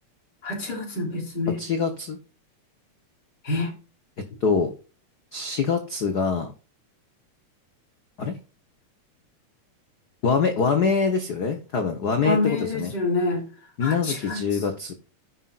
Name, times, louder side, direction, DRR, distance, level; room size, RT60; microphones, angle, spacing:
voice 1, 0.4-1.6 3.4-3.7 12.2-13.4 13.8-14.4, left 3 dB, 35° left, 1 dB, 3.6 m, -27 dB
voice 2, 1.6-2.2 4.4-4.7 5.3-6.5 8.2-8.4 10.2-12.9 13.8-14.9, left 5 dB, 75° left, 5 dB, 0.9 m, -24 dB
15.0 x 5.7 x 2.5 m, 0.33 s
omnidirectional pair, 3.5 m